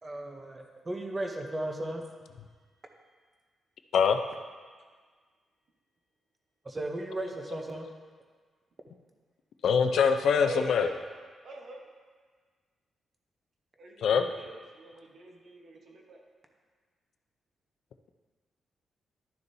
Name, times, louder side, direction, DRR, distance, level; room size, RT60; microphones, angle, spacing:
voice 1, 0.0-2.0 6.6-7.9, right 1 dB, 20° right, 3 dB, 0.7 m, -35 dB
voice 2, 9.6-10.9 14.0-14.2, left 6 dB, 65° left, 7 dB, 0.5 m, -23 dB
voice 3, 10.4-11.1 11.4-11.9 13.8-16.2, right 2 dB, 50° right, 0 dB, 1.0 m, -43 dB
11.5 x 6.8 x 2.7 m, 1.6 s
wide cardioid pair, 175°, 0 cm